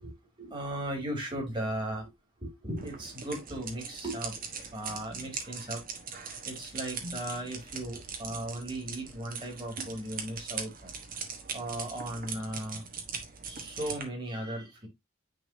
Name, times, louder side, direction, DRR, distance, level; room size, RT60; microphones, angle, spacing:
voice 1, 0.0-2.1 2.4-4.3 4.7-5.8 6.4-10.9 11.5-12.8 13.5-14.9, right 1 dB, 25° right, 2.6 m, -37 dB
sound 1, 2.8-14.0, right 5 dB, 45° right, 1.4 m, -41 dB
9.5 x 3.8 x 2.7 m
head